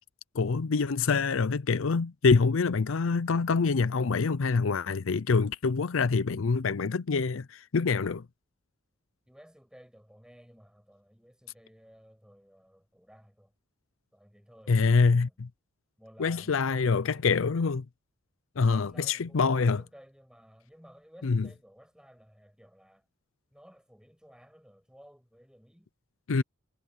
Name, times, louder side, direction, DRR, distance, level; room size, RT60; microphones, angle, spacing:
voice 1, 0.3-8.3 14.7-15.5 16.2-17.8 18.6-19.8 21.2-21.5 26.3-26.4, left 4 dB, 70° left, 0.5 m, -25 dB
voice 2, 9.3-13.5 14.1-15.4 16.0-17.5 18.6-23.1 23.5-25.9, equal, 5° right, 6.9 m, -55 dB
head